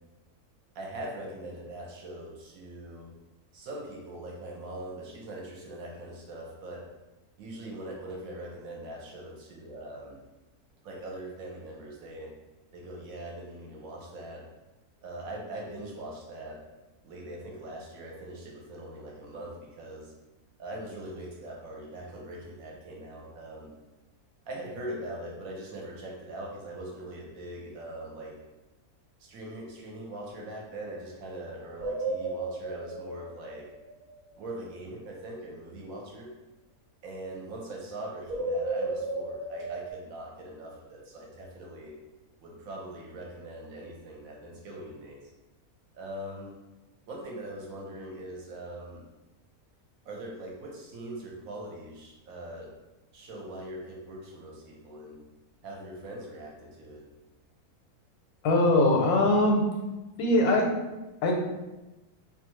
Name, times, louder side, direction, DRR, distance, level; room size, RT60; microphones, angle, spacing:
voice 1, 0.7-3.1 3.5-6.8 7.4-10.2 10.8-12.3 12.7-14.5 15.0-16.6 17.0-20.1 20.6-23.7 24.5-28.4 29.2-33.7 34.4-36.3 37.0-41.9 42.4-45.3 45.9-46.5 47.1-49.0 50.0-52.7 53.1-55.2 55.6-57.0, right 1 dB, 70° right, -2 dB, 1.0 m, -41 dB
sound 1, 31.8-34.2 38.3-39.9, right 2 dB, 55° right, 0.5 m, -33 dB
voice 2, 58.4-59.6 60.2-60.7 61.2-61.4, left 2 dB, 85° left, 0 dB, 1.1 m, -21 dB
2.6 x 2.3 x 2.9 m, 1.1 s
omnidirectional pair, 1.6 m